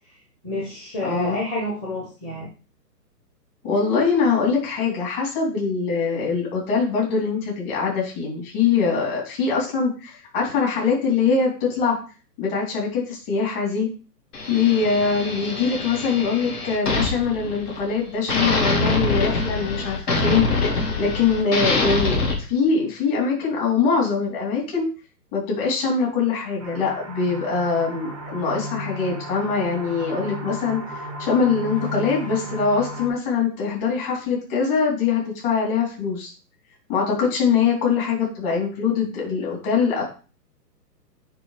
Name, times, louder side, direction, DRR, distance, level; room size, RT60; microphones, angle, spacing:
voice 1, 0.4-2.5, left 1 dB, 15° left, -5 dB, 1.0 m, -29 dB
voice 2, 1.0-1.4 3.6-12.0 12.4-13.9 14.5-24.9 25.3-36.3 36.9-40.0, left 5 dB, 35° left, -3 dB, 3.3 m, -23 dB
sound 1, 14.3-18.0 18.3-22.3, left 3 dB, 65° left, 1.9 m, -24 dB
sound 2, 26.6-33.1, equal, 20° right, 0.4 m, -34 dB
9.6 x 3.3 x 3.3 m, 0.35 s
hypercardioid pair, 145°, 50 cm